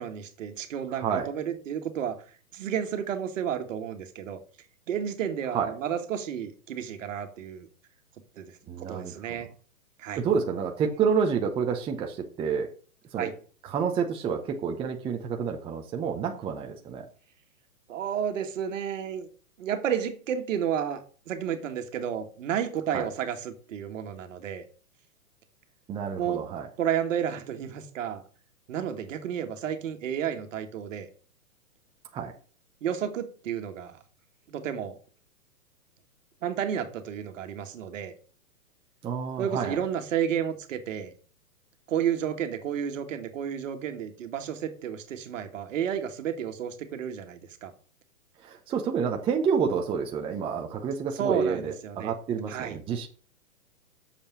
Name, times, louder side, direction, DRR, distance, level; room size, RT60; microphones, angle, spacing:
voice 1, 0.0-2.2 2.5-4.4 4.9-7.7 8.4-9.5 10.0-10.2 13.2-13.3 17.9-19.3 19.6-24.6 26.2-26.4 26.8-28.2 28.7-31.1 32.8-34.0 34.5-35.0 36.4-38.1 39.4-41.1 41.9-47.7 51.2-52.1 52.5-52.8, right 8 dB, 60° right, 1.8 m, -31 dB
voice 2, 0.9-1.3 5.5-5.7 8.7-9.5 10.2-12.7 13.1-13.3 13.6-17.1 22.9-23.1 25.9-26.7 32.1-32.3 39.0-39.8 48.4-53.1, right 6 dB, 10° right, 0.7 m, -29 dB
6.9 x 5.4 x 6.9 m
hypercardioid pair, 135°, 43 cm